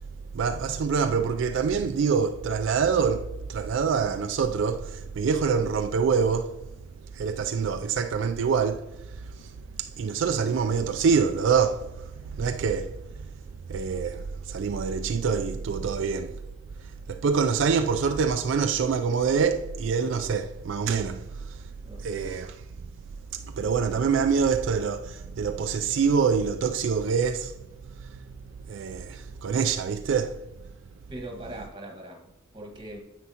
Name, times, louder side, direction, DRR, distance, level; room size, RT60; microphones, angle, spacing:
voice 1, 0.3-6.5 7.1-8.9 9.4-9.5 9.8-13.3 13.7-16.4 17.1-21.6 22.0-22.6 23.3-27.5 28.7-30.4, right 6 dB, 70° right, 0.3 m, -25 dB
voice 2, 31.1-33.0, right 1 dB, 25° right, 1.5 m, -40 dB
9.7 x 8.1 x 2.8 m
head